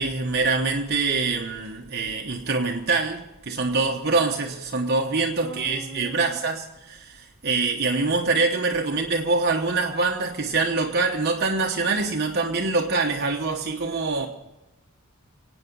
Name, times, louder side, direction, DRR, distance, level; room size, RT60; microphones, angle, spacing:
voice 1, 0.0-14.3, right 3 dB, 50° right, 1.1 m, -24 dB
voice 2, 5.4-6.4 8.2-8.6, right 3 dB, 20° left, 2.8 m, -41 dB
26.0 x 9.1 x 5.4 m
head